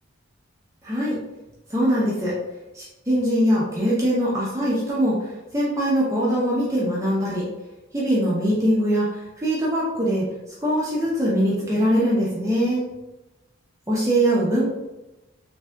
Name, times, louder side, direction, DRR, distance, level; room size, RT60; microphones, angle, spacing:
voice 1, 0.8-1.2 1.7-2.3 2.7-7.5 7.9-10.3 10.6-12.8 13.9-14.7, equal, 15° right, -7 dB, 0.5 m, -22 dB
3.4 x 2.6 x 2.2 m, 1.0 s
head